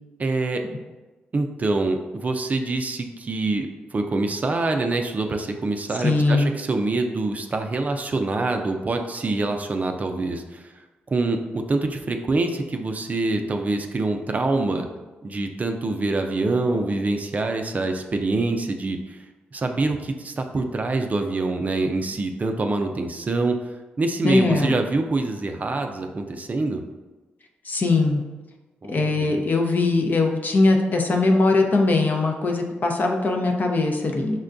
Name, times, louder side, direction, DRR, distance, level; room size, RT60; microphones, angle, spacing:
voice 1, 0.2-0.6 1.3-10.7 11.1-14.9 15.2-19.2 19.5-26.8 28.8-29.4, right 2 dB, 40° right, 5 dB, 0.4 m, -25 dB
voice 2, 6.0-6.5 24.2-24.7 27.6-28.2 28.9-34.4, left 3 dB, 45° left, 2 dB, 0.6 m, -20 dB
5.5 x 2.2 x 2.5 m, 1.2 s
supercardioid pair, 60°, 4 cm